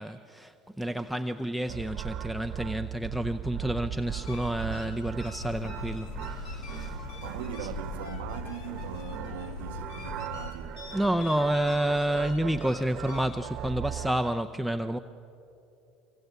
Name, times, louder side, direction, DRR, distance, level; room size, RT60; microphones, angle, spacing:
voice 1, 0.0-7.0 10.9-15.0, right 1 dB, ahead, 0.6 m, -29 dB
sound 1, 1.7-14.3, right 11 dB, 55° right, 1.0 m, -39 dB
sound 2, 4.0-13.6, left 4 dB, 70° left, 2.8 m, -47 dB
sound 3, 5.4-10.5, left 3 dB, 90° left, 1.5 m, -40 dB
voice 2, 7.2-11.0, right 13 dB, 90° right, 0.8 m, -41 dB
25.0 x 24.5 x 8.2 m
supercardioid pair, 115°, 0 cm